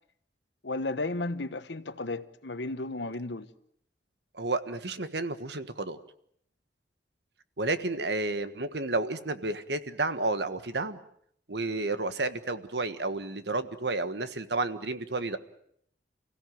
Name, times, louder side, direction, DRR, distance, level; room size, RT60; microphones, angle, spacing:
voice 1, 0.6-3.5, left 2 dB, 85° left, 1.3 m, -34 dB
voice 2, 4.3-6.0 7.6-11.0 11.5-15.4, right 2 dB, 70° right, 1.5 m, -31 dB
30.0 x 16.5 x 9.4 m
head